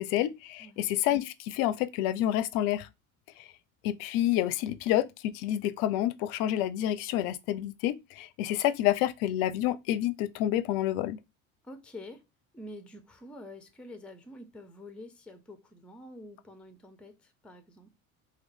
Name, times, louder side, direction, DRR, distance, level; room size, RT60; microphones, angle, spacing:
voice 1, 0.0-2.9 3.8-11.2, left 13 dB, 55° left, 0.5 m, -28 dB
voice 2, 11.6-12.2 12.5-17.9, left 1 dB, 5° left, 0.5 m, -47 dB
3.0 x 2.2 x 3.5 m
hypercardioid pair, 65°, 43 cm